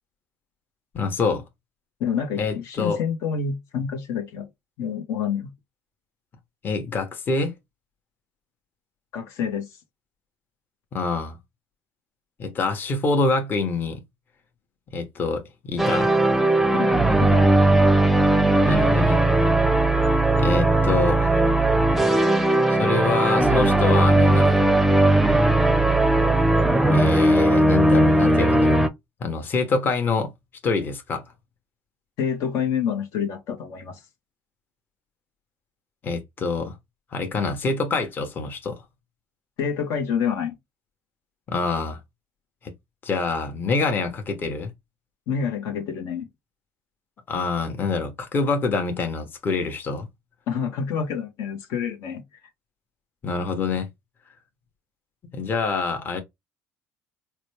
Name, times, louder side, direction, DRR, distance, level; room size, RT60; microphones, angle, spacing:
voice 1, 0.9-1.4 2.4-3.0 6.6-7.6 10.9-11.4 12.4-14.0 14.9-16.1 18.7-19.2 20.4-21.4 22.8-24.6 26.9-28.8 29.2-30.3 30.6-31.2 36.0-36.7 37.1-38.8 41.5-42.0 42.6-42.7 43.0-44.7 47.3-50.1 53.2-53.9 55.3-56.2, left 3 dB, 40° left, 1.0 m, -26 dB
voice 2, 2.0-4.5 4.8-5.5 9.1-9.7 16.7-16.9 17.2-17.5 32.2-34.0 39.6-40.5 45.3-46.3 50.5-52.2, left 7 dB, 75° left, 1.0 m, -27 dB
sound 1, 15.8-28.9, right 1 dB, 5° right, 0.6 m, -18 dB
4.0 x 2.2 x 3.1 m
cardioid pair, 105°, 5 cm